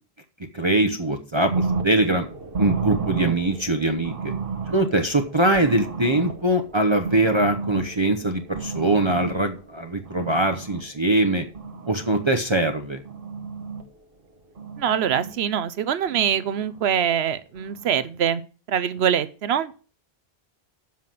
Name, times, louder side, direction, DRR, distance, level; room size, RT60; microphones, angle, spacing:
voice 1, 0.5-2.3 2.6-4.3 4.7-11.4 11.9-13.0, right 2 dB, 30° right, 4 dB, 0.7 m, -22 dB
sound 1, 1.5-10.8 11.3-12.3 12.8-13.8 14.6-15.3 16.1-16.8 17.6-17.9, right 4 dB, 60° right, 1.4 m, -32 dB
voice 2, 14.8-18.4 18.7-19.7, right 8 dB, 85° right, 15 dB, 1.0 m, -24 dB
7.5 x 5.7 x 7.6 m, 0.37 s
omnidirectional pair, 1.0 m